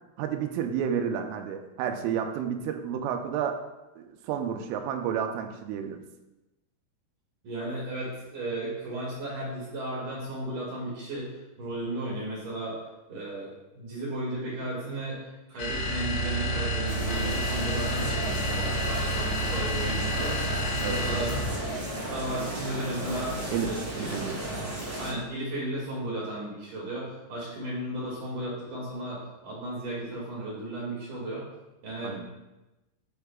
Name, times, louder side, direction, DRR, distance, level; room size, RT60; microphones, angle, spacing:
voice 1, 0.2-3.6 4.0-6.0 20.8-21.3 23.5-24.4 32.0-32.2, right 8 dB, 85° right, 5 dB, 3.2 m, -31 dB
voice 2, 7.4-12.8 13.1-18.7 19.1-20.3 20.8-21.3 21.7-23.8 25.0-31.4 31.8-32.2, right 1 dB, 50° right, -6 dB, 3.2 m, -35 dB
sound 1, 15.6-21.7, equal, 80° left, 3.8 m, -30 dB
sound 2, 16.9-25.1, right 1 dB, 20° right, 1.6 m, -34 dB
10.5 x 7.4 x 2.4 m, 1.0 s
omnidirectional pair, 5.6 m